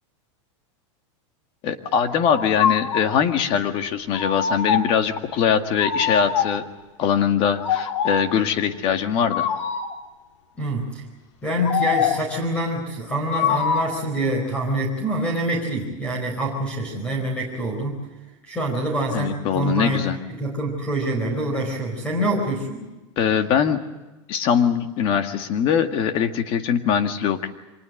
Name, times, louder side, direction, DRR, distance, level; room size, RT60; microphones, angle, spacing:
voice 1, 1.6-6.6 7.0-9.5 19.1-20.2 23.2-23.8 24.3-27.5, left 8 dB, 35° left, 7 dB, 1.9 m, -22 dB
sound 1, 2.3-3.2 4.1-5.0 5.8-6.7 7.6-8.4 9.3-10.0 11.6-12.4 13.3-14.1, left 7 dB, 70° left, 1.9 m, -24 dB
voice 2, 10.6-11.0 11.4-18.1 18.5-22.8, right 1 dB, 5° left, 1 dB, 4.5 m, -26 dB
25.0 x 20.0 x 7.8 m, 1.1 s
supercardioid pair, 160°, 16 cm